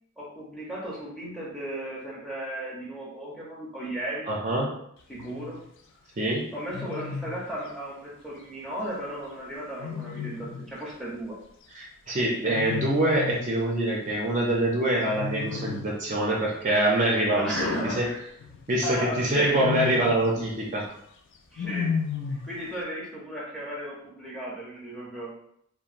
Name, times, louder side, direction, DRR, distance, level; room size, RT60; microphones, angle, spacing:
voice 1, 0.2-4.3 5.1-5.6 6.5-11.4 17.3-18.2 18.8-19.7 21.5-22.0 22.3-25.3, right 1 dB, ahead, -5 dB, 0.7 m, -35 dB
voice 2, 4.3-4.8 6.2-6.5 11.7-18.1 18.7-20.9, right 1 dB, 35° right, -3 dB, 0.4 m, -25 dB
Wild animals, 5.1-5.5 6.7-7.4 9.8-10.7 12.5-13.6 15.0-16.0 17.5-18.6 19.4-20.3 21.6-22.6, left 6 dB, 60° left, 0.3 m, -33 dB
2.9 x 2.1 x 2.4 m, 0.69 s
head